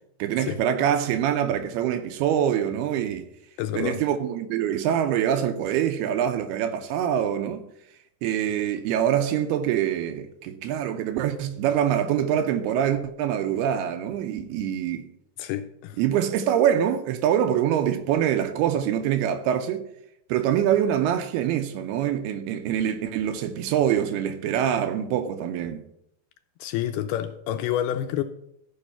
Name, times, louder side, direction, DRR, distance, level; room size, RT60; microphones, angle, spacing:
voice 1, 0.2-3.3 3.8-7.6 8.2-15.1 16.0-19.8 20.3-25.8, right 9 dB, 80° right, 2.5 m, -24 dB
voice 2, 3.6-4.0 15.4-16.0 26.6-28.2, left 11 dB, 80° left, 2.3 m, -28 dB
14.0 x 5.1 x 5.6 m
omnidirectional pair, 4.8 m